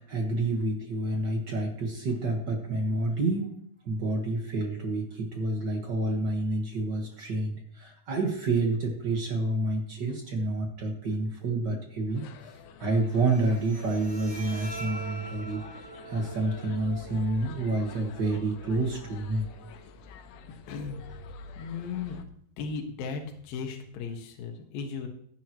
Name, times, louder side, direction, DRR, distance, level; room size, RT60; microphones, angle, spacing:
voice 1, 0.0-3.5 3.8-19.5, right 2 dB, 85° right, 1 dB, 0.9 m, -29 dB
sound 1, 12.1-22.3, left 6 dB, 90° left, 3.1 m, -48 dB
Bowed string instrument, 13.1-20.1, right 2 dB, ahead, 4.1 m, -45 dB
voice 2, 20.7-21.0 21.6-22.2 22.6-25.1, left 5 dB, 70° left, 2 dB, 2.9 m, -36 dB
16.5 x 10.5 x 3.1 m, 0.64 s
omnidirectional pair, 4.7 m